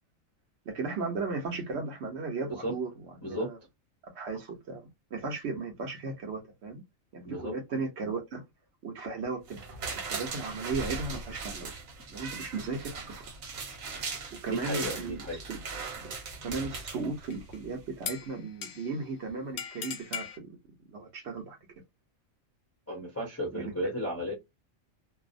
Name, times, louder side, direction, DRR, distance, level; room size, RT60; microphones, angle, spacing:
voice 1, 0.7-2.9 3.2-3.6 4.0-4.8 5.1-6.8 7.1-8.4 8.8-9.8 10.1-11.7 12.1-13.2 14.4-15.6 16.0-16.1 16.4-20.6 20.9-21.6 23.5-23.9, right 4 dB, 60° right, 1.0 m, -36 dB
voice 2, 3.2-3.5 7.2-7.5 14.5-15.4 22.9-24.3, equal, 20° left, 0.4 m, -34 dB
sound 1, 9.5-17.6 18.0-18.1, right 4 dB, 85° right, 1.3 m, -39 dB
sound 2, 17.3-17.6 18.1-19.0 19.6-20.4, left 7 dB, 65° left, 0.7 m, -39 dB
2.7 x 2.0 x 2.4 m
omnidirectional pair, 1.4 m